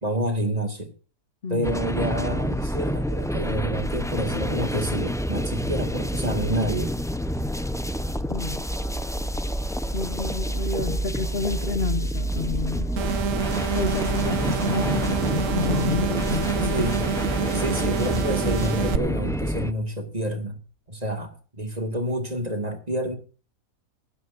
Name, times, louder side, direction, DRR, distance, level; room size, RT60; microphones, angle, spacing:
voice 1, 0.0-0.9 1.5-7.0 16.5-17.1 17.5-20.6 20.9-23.1, right 1 dB, 25° right, 2.3 m, -28 dB
sound 1, 1.6-19.7, equal, 5° left, 0.3 m, -28 dB
voice 2, 8.3-8.6 9.9-13.0 13.7-16.9, left 4 dB, 40° left, 1.2 m, -30 dB
sound 2, 13.0-19.0, right 7 dB, 55° right, 1.3 m, -27 dB
sound 3, 20.1-20.2, left 2 dB, 70° left, 2.9 m, -41 dB
18.0 x 16.0 x 2.6 m
omnidirectional pair, 1.7 m